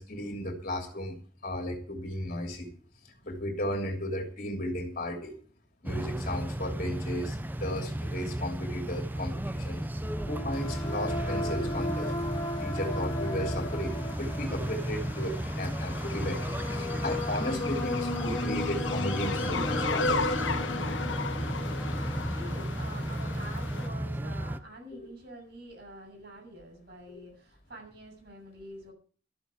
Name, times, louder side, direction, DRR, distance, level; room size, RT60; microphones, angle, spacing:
voice 1, 0.0-2.7 3.2-5.3 5.8-9.8 10.3-12.1 12.6-16.4 16.7-20.4, left 1 dB, 45° left, 2 dB, 3.0 m, -35 dB
sound 1, 5.8-24.6, right 1 dB, 10° right, 0.7 m, -34 dB
sound 2, 10.0-23.6, left 2 dB, 25° left, 1.4 m, -37 dB
sound 3, 10.5-23.9, left 4 dB, 90° left, 1.3 m, -37 dB
voice 2, 22.3-28.9, equal, 60° right, 3 dB, 7.4 m, -46 dB
13.5 x 7.1 x 8.7 m, 0.43 s
head